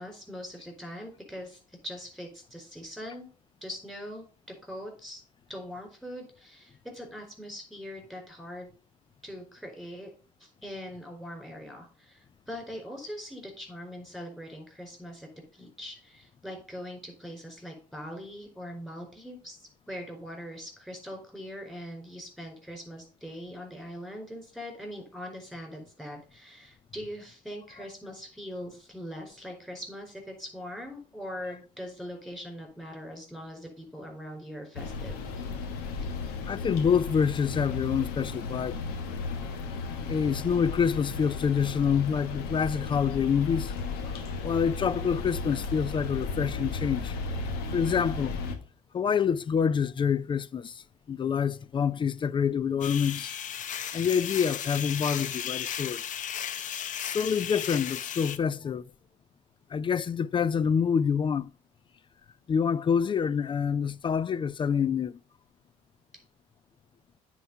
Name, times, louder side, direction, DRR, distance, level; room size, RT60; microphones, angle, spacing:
voice 1, 0.0-3.3 3.6-4.2 4.6-5.2 5.5-8.7 9.2-10.1 10.4-35.2, equal, ahead, 4.7 m, -42 dB
sound 1, 34.7-48.6, left 4 dB, 80° left, 1.4 m, -35 dB
voice 2, 36.5-38.8 40.1-43.7 44.4-47.1 47.7-48.3 48.9-50.7 51.1-53.3 53.9-56.0 57.1-58.8 59.7-61.5 62.5-65.2, left 7 dB, 30° left, 0.4 m, -27 dB
sound 2, 52.8-58.4, left 9 dB, 55° left, 0.8 m, -35 dB
9.2 x 4.6 x 5.5 m
supercardioid pair, 85°, 16 cm